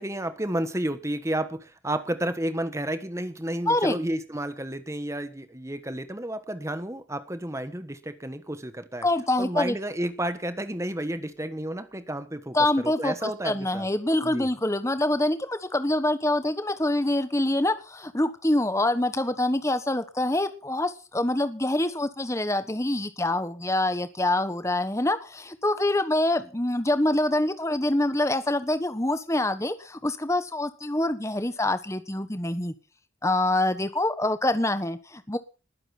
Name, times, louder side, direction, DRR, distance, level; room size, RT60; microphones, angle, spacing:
voice 1, 0.0-9.1 9.4-13.9 14.2-14.5, right 1 dB, 15° right, 11 dB, 1.3 m, -31 dB
voice 2, 3.7-4.0 9.0-9.8 12.5-32.7 33.2-35.4, left 1 dB, 15° left, 11 dB, 1.3 m, -25 dB
20.0 x 9.0 x 6.0 m, 0.35 s
head